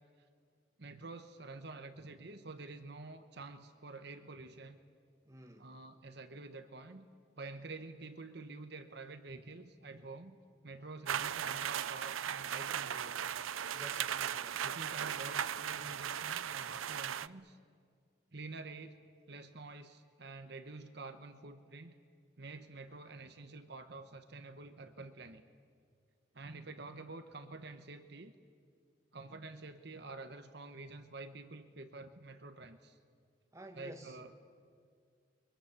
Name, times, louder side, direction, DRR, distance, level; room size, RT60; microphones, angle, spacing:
voice 1, 0.8-4.8 5.6-7.1 7.4-10.4 10.6-13.3 14.6-17.6 18.3-19.0 19.3-21.9 22.4-25.4 26.3-28.3 29.1-33.0 33.7-34.3, right 3 dB, 55° right, 8 dB, 1.0 m, -48 dB
voice 2, 5.2-5.8 13.6-14.8 33.5-34.2, right 1 dB, 15° right, 4 dB, 1.6 m, -52 dB
sound 1, 11.1-17.3, right 9 dB, 90° right, 0.6 m, -37 dB
29.5 x 23.5 x 7.3 m, 2.2 s
head